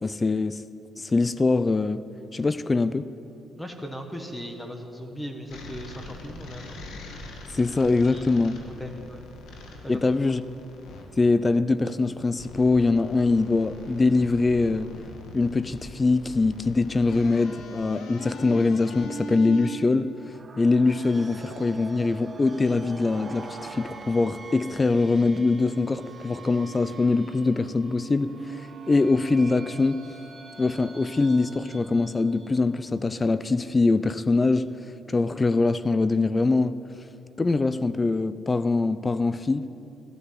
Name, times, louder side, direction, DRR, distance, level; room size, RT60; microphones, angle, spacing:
voice 1, 0.0-0.6 1.0-2.0 2.3-3.1 7.5-8.6 9.9-10.4 11.2-14.9 15.3-20.1 20.6-30.0 30.6-34.7 35.1-36.8 37.4-39.6, left 3 dB, 25° left, 14 dB, 0.5 m, -23 dB
voice 2, 3.6-6.8 8.0-8.3 8.8-9.3 9.8-10.2, equal, 5° left, 4 dB, 1.6 m, -38 dB
sound 1, 5.5-11.0 12.3-19.8, left 1 dB, 80° left, 2.1 m, -41 dB
sound 2, 20.2-32.7, right 4 dB, 30° right, 1.4 m, -43 dB
15.0 x 11.5 x 7.7 m, 2.8 s
cardioid pair, 90°, 0 cm